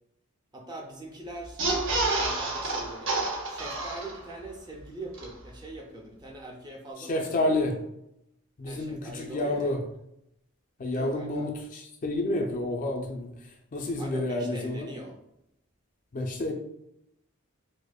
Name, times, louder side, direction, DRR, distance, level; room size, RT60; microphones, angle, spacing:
voice 1, 0.5-1.6 2.2-3.2 3.4-7.7 8.6-9.7 10.8-11.5 14.0-15.2, right 1 dB, 20° right, 0 dB, 0.5 m, -42 dB
sound 1, 1.5-4.4 4.8-4.9 5.1-5.3, right 2 dB, 60° right, 0.7 m, -29 dB
voice 2, 7.1-7.7 8.6-9.8 10.8-14.9 16.1-16.5, left 1 dB, 40° left, 3 dB, 0.4 m, -29 dB
4.9 x 2.1 x 2.3 m, 0.80 s
head